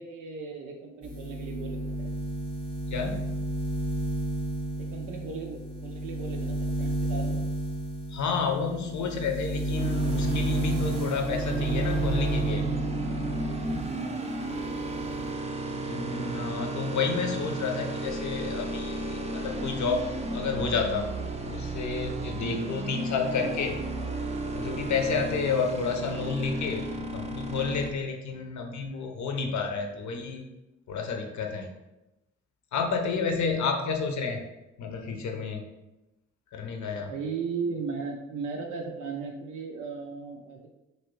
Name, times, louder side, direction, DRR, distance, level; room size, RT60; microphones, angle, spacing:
voice 1, 0.0-2.2 4.8-7.4 13.8-16.5 22.4-22.7 29.5-29.6 29.9-30.2 37.0-40.7, right 5 dB, 70° right, 1 dB, 0.5 m, -38 dB
sound 1, 1.0-14.0 14.3-15.3, right 1 dB, 15° left, 0.8 m, -31 dB
voice 2, 2.9-3.4 8.1-12.6 15.6-21.1 21.4-23.8 24.5-30.5 30.9-31.7 32.7-34.5 34.8-35.6 36.5-37.1, left 5 dB, 60° left, 4 dB, 0.6 m, -30 dB
sound 2, 9.8-27.9, right 2 dB, 20° right, 0.5 m, -34 dB
2.9 x 2.6 x 3.1 m, 0.97 s
supercardioid pair, 45°, 33 cm